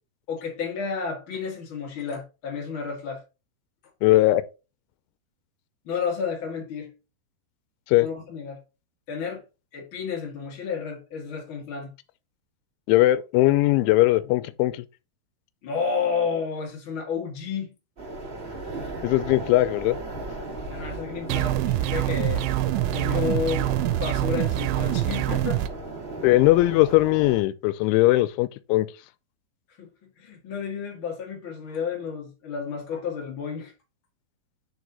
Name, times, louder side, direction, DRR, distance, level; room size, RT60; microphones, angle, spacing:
voice 1, 0.3-3.2 5.8-6.9 8.0-8.6 9.1-9.4 9.7-11.9 15.6-17.7 20.7-22.4 22.9-23.7 24.0-25.6 29.8-33.7, left 6 dB, 45° left, 1.8 m, -31 dB
voice 2, 4.0-4.4 7.9-8.1 12.9-14.8 19.0-20.0 26.2-28.9, left 17 dB, 85° left, 2.9 m, -20 dB
sound 1, 18.0-27.4, right 2 dB, 35° right, 0.9 m, -36 dB
sound 2, 21.3-25.7, right 15 dB, 85° right, 2.9 m, -25 dB
6.3 x 4.6 x 4.0 m
omnidirectional pair, 5.4 m